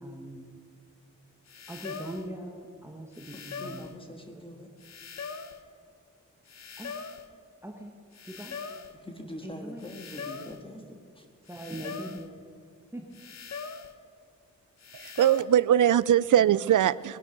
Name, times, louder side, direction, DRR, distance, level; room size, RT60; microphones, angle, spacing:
voice 1, 0.0-0.4 1.7-3.9 4.3-4.4 6.8-7.0 7.6-7.9 8.3-8.6 9.4-9.8 11.5-12.4 12.9-13.1, right 1 dB, 10° right, 1.2 m, -41 dB
sound 1, 1.5-2.3 3.1-4.0 4.8-5.6 6.5-7.3 8.1-9.0 9.8-10.6 11.5-12.3 13.1-14.0 14.8-15.4, left 5 dB, 60° left, 1.0 m, -41 dB
voice 2, 3.6-4.7 9.0-11.3, left 1 dB, 20° left, 1.7 m, -43 dB
voice 3, 14.9-17.2, right 10 dB, 90° right, 0.5 m, -22 dB
20.5 x 11.5 x 5.9 m
wide cardioid pair, 170°, 30 cm